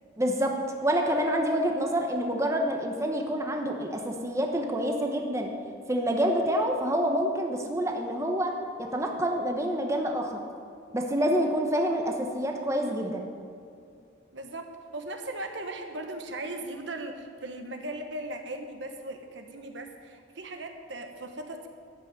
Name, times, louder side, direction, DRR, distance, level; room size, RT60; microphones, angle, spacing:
voice 1, 0.2-0.5 0.8-5.5 5.9-8.5 8.9-10.4 10.9-13.3, equal, 15° right, 2 dB, 1.0 m, -27 dB
voice 2, 14.3-21.7, right 1 dB, 65° right, 5 dB, 1.2 m, -38 dB
13.0 x 6.3 x 9.2 m, 2.4 s
head